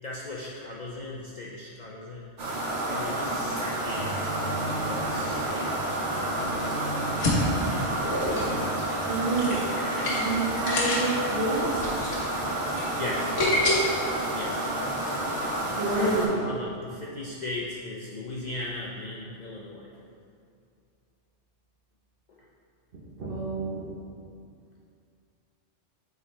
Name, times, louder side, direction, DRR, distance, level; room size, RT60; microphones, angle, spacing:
voice 1, 0.0-2.3 2.9-4.4 4.7-7.1 10.0-10.2 12.9-13.4 14.3-14.7 15.0-19.9 22.3-22.4, left 2 dB, 50° left, -4 dB, 0.5 m, -38 dB
sound 1, 2.4-16.3, right 1 dB, 75° right, 1.4 m, -30 dB
sound 2, 7.1-13.7, left 1 dB, 90° left, 1.4 m, -29 dB
voice 2, 8.0-8.5 9.1-9.6 10.2-11.8 15.8-16.4 23.2-23.9, right 2 dB, 55° right, -9 dB, 1.1 m, -28 dB
8.0 x 3.9 x 3.2 m, 2.4 s
omnidirectional pair, 1.2 m